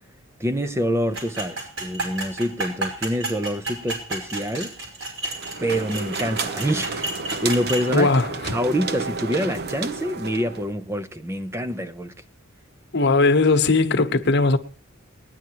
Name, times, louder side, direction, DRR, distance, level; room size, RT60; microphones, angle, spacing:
voice 1, 0.4-4.7 5.6-8.1 8.5-12.1, equal, 15° right, 0.6 m, -26 dB
sound 1, 1.1-7.9, right 2 dB, 70° right, 5.4 m, -31 dB
sound 2, 5.2-10.7, right 4 dB, 50° right, 1.0 m, -31 dB
voice 2, 7.9-8.3 12.9-14.6, left 3 dB, 55° left, 1.1 m, -18 dB
19.5 x 10.5 x 4.6 m
head